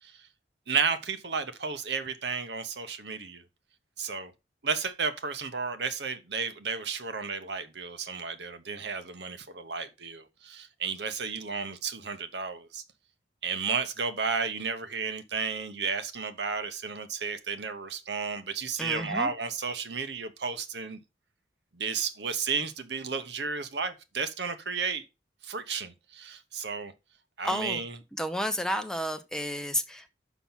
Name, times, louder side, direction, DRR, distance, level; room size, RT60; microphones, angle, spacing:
voice 1, 0.7-3.4 4.0-4.3 4.6-12.8 13.4-21.0 21.7-25.0 25.4-26.9 27.4-28.0, right 5 dB, 70° right, 1.0 m, -33 dB
voice 2, 18.8-19.3 27.4-27.8 28.2-30.1, equal, 5° left, 0.7 m, -31 dB
6.0 x 5.8 x 5.6 m
head